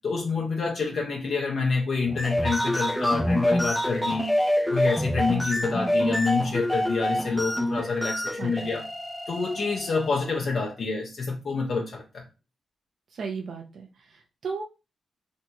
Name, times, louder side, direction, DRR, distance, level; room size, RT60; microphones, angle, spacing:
voice 1, 0.0-4.3 4.7-8.9 9.3-12.2, left 4 dB, 65° left, 0.5 m, -27 dB
sound 1, 2.1-10.3, left 1 dB, 5° left, 0.3 m, -27 dB
voice 2, 8.4-8.8 13.1-14.6, right 5 dB, 70° right, 0.5 m, -35 dB
2.8 x 2.7 x 2.2 m
cardioid pair, 55°, 0 cm